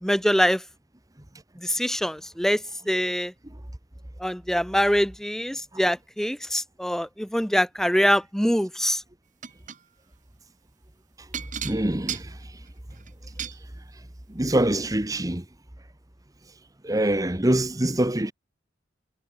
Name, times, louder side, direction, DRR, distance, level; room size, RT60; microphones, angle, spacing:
voice 1, 0.0-0.6 1.6-3.3 4.2-9.0, equal, ahead, 2.8 m, -24 dB
sound 1, 9.4-9.8 11.3-13.6 14.6-14.7 15.1-15.2, right 9 dB, 40° right, 2.6 m, -35 dB
voice 2, 11.6-12.3 14.3-15.4 16.8-18.3, right 1 dB, 20° right, 1.1 m, -24 dB
head